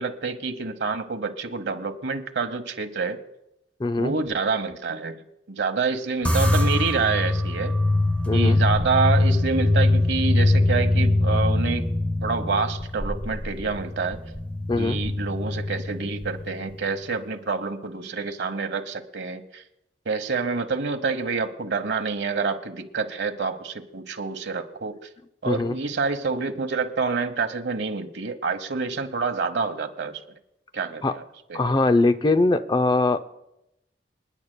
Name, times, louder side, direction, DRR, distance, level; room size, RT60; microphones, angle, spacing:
voice 1, 0.0-3.2 4.0-5.2 5.5-7.7 8.3-11.9 12.2-14.2 14.8-19.6 20.0-24.9 25.4-30.2 30.7-31.2 31.5-31.6, right 4 dB, 85° right, 8 dB, 1.0 m, -27 dB
voice 2, 3.8-4.1 8.3-8.6 14.7-15.0 25.5-25.7 31.0-31.2 31.5-33.2, left 2 dB, 25° left, 11 dB, 0.5 m, -21 dB
sound 1, 6.3-16.9, left 2 dB, 10° left, 1.1 m, -23 dB
27.5 x 10.0 x 2.2 m, 0.84 s
head